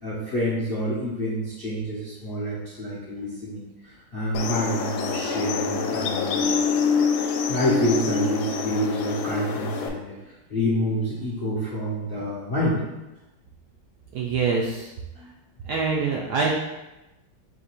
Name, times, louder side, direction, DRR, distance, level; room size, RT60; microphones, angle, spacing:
voice 1, 0.0-7.0 7.5-12.8 15.2-15.3, equal, 50° left, -7 dB, 0.7 m, -28 dB
sound 1, 4.3-9.9, left 5 dB, 80° left, 1.3 m, -26 dB
voice 2, 14.1-14.9 15.7-16.6, right 4 dB, 75° right, -2 dB, 0.9 m, -24 dB
4.1 x 2.8 x 4.5 m, 1.0 s
omnidirectional pair, 2.2 m